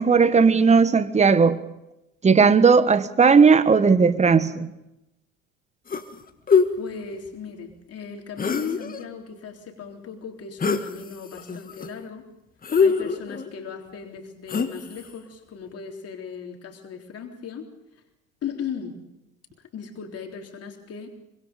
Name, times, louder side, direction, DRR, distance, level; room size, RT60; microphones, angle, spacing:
voice 1, 0.0-1.6 2.2-4.7, right 5 dB, 15° right, 1.4 m, -16 dB
sound 1, 5.9-6.1 6.5-6.7 8.4-9.0 10.6-10.9 11.3-11.9 12.6-13.5 14.5-15.0, left 5 dB, 20° left, 1.9 m, -22 dB
voice 2, 6.8-12.2 12.8-17.6 18.4-19.0 19.6-21.1, left 6 dB, 35° left, 3.7 m, -37 dB
25.5 x 24.5 x 5.3 m
figure-of-eight pair, 75°, 41 cm